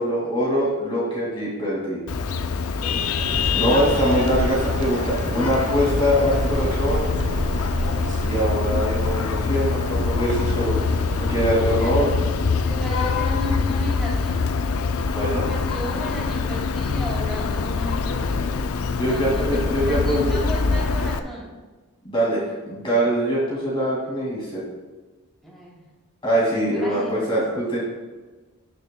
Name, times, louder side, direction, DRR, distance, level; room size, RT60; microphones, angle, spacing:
voice 1, 0.0-2.0 3.5-7.1 8.2-10.8 11.3-12.1 15.1-15.5 19.0-20.3 22.0-24.6 26.2-27.8, equal, 25° left, -6 dB, 2.2 m, -23 dB
Vehicle horn car horn honking, 2.1-21.2, left 4 dB, 70° left, 0.5 m, -24 dB
voice 2, 2.7-3.3 11.7-12.2 12.6-14.5 15.1-18.6 19.1-21.5 25.4-25.8 26.8-27.4, left 1 dB, ahead, -6 dB, 2.8 m, -34 dB
Sidewalk Cafe Paris, 3.2-11.5, right 1 dB, 35° right, 0.8 m, -30 dB
18.0 x 6.6 x 2.2 m, 1.3 s
head